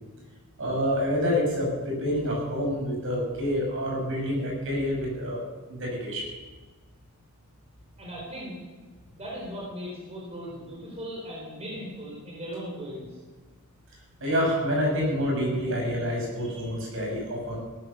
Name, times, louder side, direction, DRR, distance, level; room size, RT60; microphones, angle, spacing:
voice 1, 0.6-5.4 5.7-6.3 14.2-17.6, equal, 60° right, -1 dB, 6.1 m, -27 dB
voice 2, 8.0-8.6 9.1-13.2, equal, 30° right, -4 dB, 4.2 m, -38 dB
17.5 x 11.0 x 6.9 m, 1.3 s
head